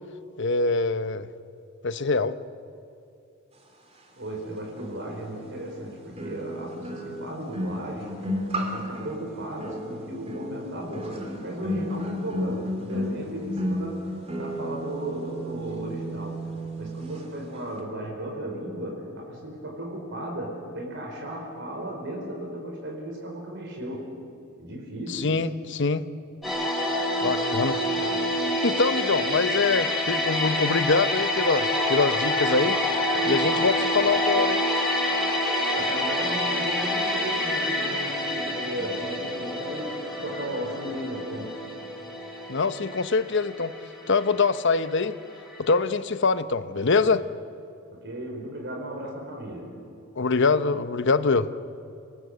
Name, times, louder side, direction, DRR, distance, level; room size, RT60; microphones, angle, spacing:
voice 1, 0.4-1.3 1.8-2.4 25.1-26.0 27.2-28.1 28.6-32.8 33.3-34.6 42.5-43.7 44.1-45.2 45.6-47.2 50.2-51.6, left 4 dB, 60° left, 13 dB, 0.9 m, -24 dB
voice 2, 4.1-14.1 14.4-16.4 16.8-24.1 24.6-25.5 35.7-41.6 47.9-49.7, right 1 dB, 60° right, 0 dB, 5.0 m, -35 dB
sound 1, 4.8-4.9 6.2-17.3 17.5-17.8, equal, 30° right, 2.8 m, -33 dB
sound 2, 26.4-45.3 45.5-45.7, left 1 dB, ahead, 5.5 m, -27 dB
29.5 x 18.5 x 8.0 m, 2.6 s
head